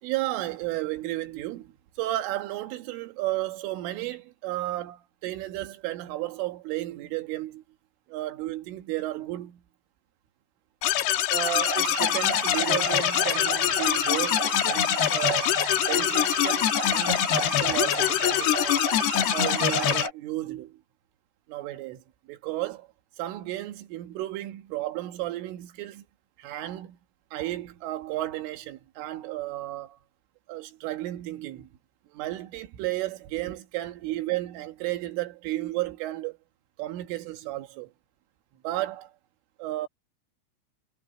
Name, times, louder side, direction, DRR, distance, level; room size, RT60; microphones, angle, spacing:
voice 1, 0.0-7.6 8.1-9.6 11.3-15.5 15.9-18.9 19.3-20.8 21.5-22.0 22.3-22.9 23.2-26.0 26.4-27.0 27.3-30.0 30.5-31.7 32.1-36.4 36.8-37.9 38.6-39.1 39.6-39.9, right 16 dB, 85° right, 4.0 m, -33 dB
sound 1, 10.8-20.1, left 12 dB, 70° left, 2.9 m, -24 dB
sound 2, 11.4-20.1, right 3 dB, 50° right, 7.9 m, -33 dB
omnidirectional pair, 5.6 m